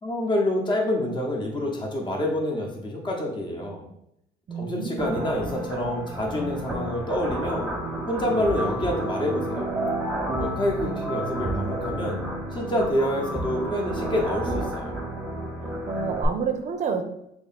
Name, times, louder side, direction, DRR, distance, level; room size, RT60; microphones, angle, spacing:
voice 1, 0.0-3.8 4.5-7.7 8.1-9.7 10.4-12.2 12.5-14.9, left 1 dB, 25° left, 0 dB, 1.0 m, -27 dB
voice 2, 4.5-5.2 15.9-17.0, right 5 dB, 45° right, 7 dB, 0.6 m, -29 dB
sound 1, 5.0-16.3, right 1 dB, 5° right, 1.1 m, -30 dB
3.1 x 3.0 x 4.2 m, 0.77 s
cardioid pair, 110°, 17 cm